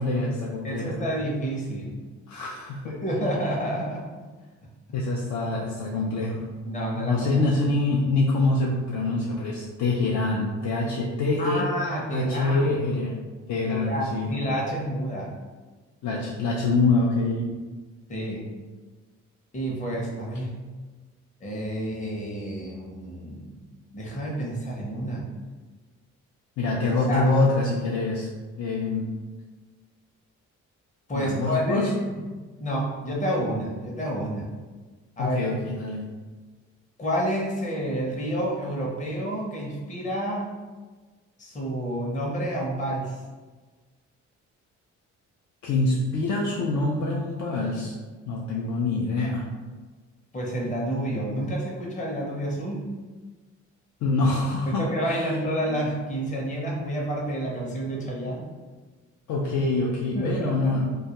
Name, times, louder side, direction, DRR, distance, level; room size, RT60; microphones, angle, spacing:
voice 1, 0.0-1.0 2.3-3.0 4.9-6.5 6.9-11.7 12.1-13.2 13.5-14.4 16.0-17.5 26.6-28.3 28.5-29.1 31.1-31.9 35.2-36.0 45.6-47.9 48.3-49.5 54.0-55.3 55.7-55.8 59.3-60.9, left 2 dB, 70° left, -4 dB, 0.5 m, -25 dB
voice 2, 0.6-2.0 2.8-4.0 6.7-7.4 11.4-12.8 13.7-15.3 18.1-18.5 19.5-20.5 21.4-23.6 23.9-25.2 27.1-27.3 31.1-32.2 32.6-34.5 35.2-35.5 37.0-40.5 41.4-43.2 50.3-52.8 54.7-58.4 60.1-60.9, right 1 dB, 25° left, -3 dB, 0.6 m, -29 dB
2.3 x 2.2 x 2.8 m, 1.3 s
cardioid pair, 90°, 30 cm